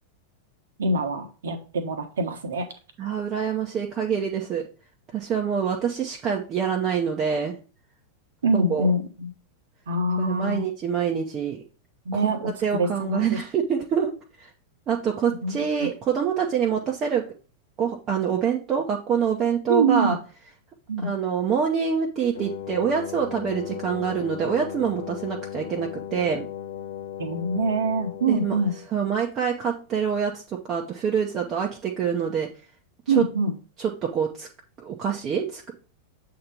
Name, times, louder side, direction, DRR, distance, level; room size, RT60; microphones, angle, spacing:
voice 1, 0.8-2.7 8.4-9.3 9.9-10.6 12.0-13.4 15.4-15.5 19.7-20.2 20.9-21.1 27.2-28.7 33.1-33.6, right 2 dB, 65° right, 6 dB, 1.2 m, -24 dB
voice 2, 3.0-4.6 5.1-7.5 8.5-8.9 10.2-11.6 12.1-14.1 14.4-14.5 14.9-17.2 17.8-20.2 21.0-26.5 28.3-28.6 28.9-32.5 33.2-33.3 33.8-34.5 34.8-35.7, right 7 dB, 30° right, -1 dB, 0.9 m, -26 dB
Wind instrument woodwind instrument, 22.3-28.9, left 10 dB, 60° left, 0.6 m, -36 dB
7.7 x 2.9 x 5.1 m, 0.36 s
figure-of-eight pair, 90°, 0 cm